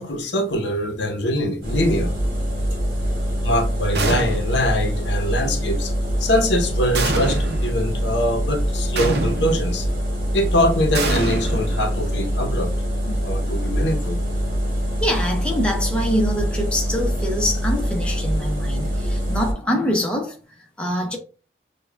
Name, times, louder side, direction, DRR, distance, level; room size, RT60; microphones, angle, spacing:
voice 1, 0.0-2.1 3.4-5.9 6.2-9.9 10.3-12.7 13.1-14.2, left 1 dB, 80° left, 0.8 m, -23 dB
sound 1, 1.6-19.5, equal, 55° right, 1.8 m, -24 dB
sound 2, 3.9-4.7 6.9-7.7 8.9-9.7 10.9-12.2, right 3 dB, 70° right, 0.7 m, -26 dB
voice 2, 15.0-21.2, equal, 5° left, 0.7 m, -25 dB
6.6 x 2.3 x 2.3 m
head